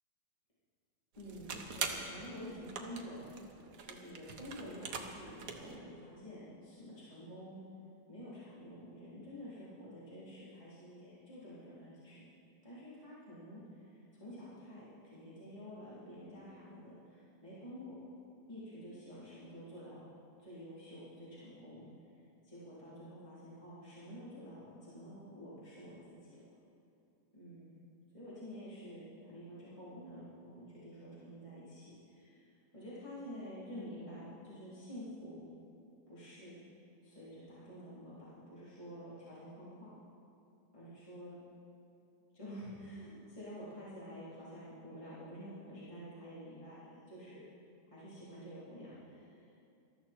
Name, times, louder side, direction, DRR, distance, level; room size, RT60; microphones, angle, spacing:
sound 1, 1.1-5.8, right 5 dB, 65° right, 1.6 m, -44 dB
voice 1, 1.2-3.3 3.8-7.6 8.1-12.3 12.6-13.6 14.1-17.9 18.5-20.0 20.4-21.9 22.4-26.4 27.3-27.7 28.1-35.4 36.1-36.6 37.0-39.9 40.7-41.4 42.3-47.5 47.9-49.5, equal, 15° left, -11 dB, 3.6 m, -49 dB
19.5 x 13.5 x 4.4 m, 2.6 s
omnidirectional pair, 2.0 m